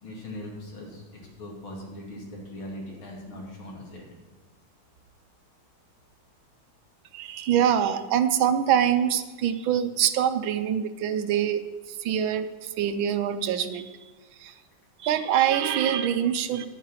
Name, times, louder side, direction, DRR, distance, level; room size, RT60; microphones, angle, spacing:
voice 1, 0.0-4.0, left 1 dB, 75° left, -1 dB, 3.4 m, -40 dB
voice 2, 7.1-14.0 14.4-14.5 15.0-16.7, right 9 dB, 75° right, 10 dB, 1.4 m, -25 dB
10.0 x 8.7 x 5.7 m, 1.3 s
omnidirectional pair, 2.3 m